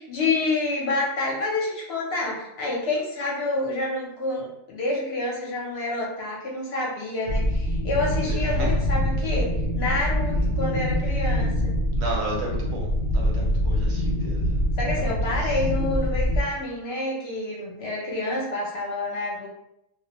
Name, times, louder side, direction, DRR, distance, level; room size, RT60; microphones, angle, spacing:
voice 1, 0.0-11.7 14.8-19.5, left 2 dB, 60° left, -3 dB, 0.8 m, -28 dB
sound 1, 7.3-16.4, equal, 85° right, 1.0 m, -24 dB
voice 2, 8.2-8.7 10.3-10.5 12.0-14.6 14.9-15.6, right 1 dB, 65° right, -2 dB, 0.8 m, -34 dB
2.3 x 2.1 x 2.8 m, 0.83 s
omnidirectional pair, 1.3 m